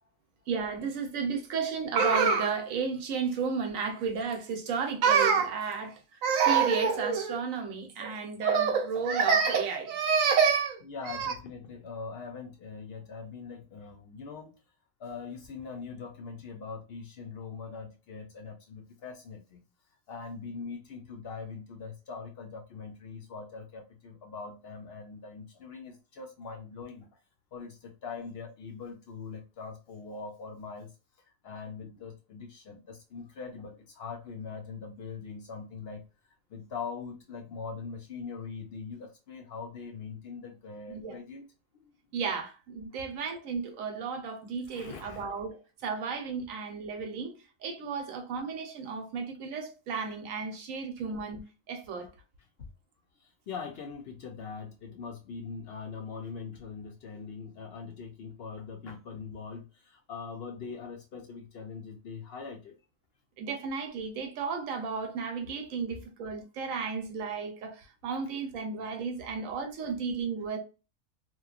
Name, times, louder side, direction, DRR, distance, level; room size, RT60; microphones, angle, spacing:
voice 1, 0.5-11.3 40.9-41.2 42.1-47.3 47.6-51.4 51.7-52.1 63.4-70.6, right 6 dB, 80° right, 1.1 m, -30 dB
voice 2, 10.9-14.6 15.0-19.7 20.1-27.1 27.5-30.9 31.4-36.0 36.5-41.5 44.7-45.3 52.6-52.7 53.5-62.7 69.3-69.4, left 5 dB, 60° left, 0.7 m, -42 dB
3.0 x 2.2 x 2.3 m
omnidirectional pair, 1.4 m